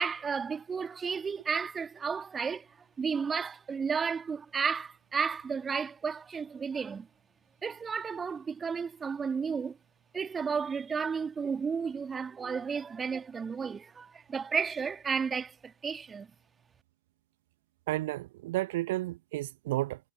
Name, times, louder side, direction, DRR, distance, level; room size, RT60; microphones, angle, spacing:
voice 1, 0.0-2.7 3.0-7.1 7.6-9.8 10.1-16.3, right 6 dB, 15° right, 2.5 m, -33 dB
voice 2, 17.9-20.0, right 17 dB, 55° right, 1.3 m, -32 dB
figure-of-eight pair, 90°, 0 cm